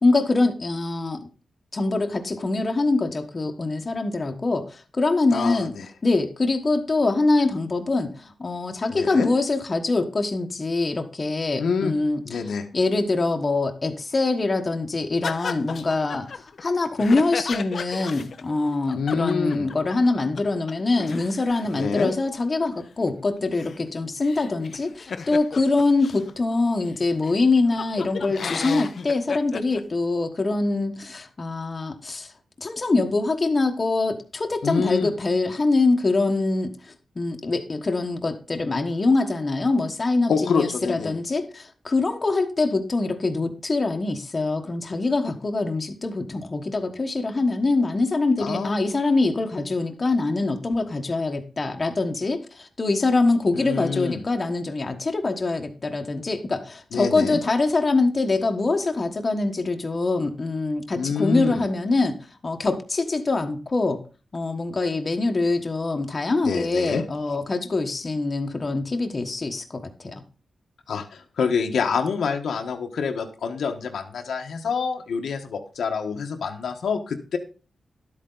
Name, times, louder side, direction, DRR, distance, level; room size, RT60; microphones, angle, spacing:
voice 1, 0.0-1.2 1.7-5.7 6.0-12.4 12.7-32.3 32.6-62.2 62.4-64.0 64.3-70.2, left 3 dB, 30° left, 4 dB, 1.2 m, -24 dB
voice 2, 5.3-5.9 8.9-9.3 11.6-11.9 12.2-12.7 18.9-19.7 21.7-22.1 34.6-35.1 40.3-41.2 48.4-48.8 53.5-54.2 56.9-57.4 60.9-61.7 66.4-67.0 70.9-77.4, left 5 dB, 80° left, 4 dB, 1.4 m, -26 dB
sound 1, 15.2-20.1 20.4-20.5 20.7-26.3 26.9-27.0 27.2-29.8, left 5 dB, 55° left, 0.7 m, -34 dB
12.0 x 8.5 x 3.9 m, 0.35 s
wide cardioid pair, 145°, 0 cm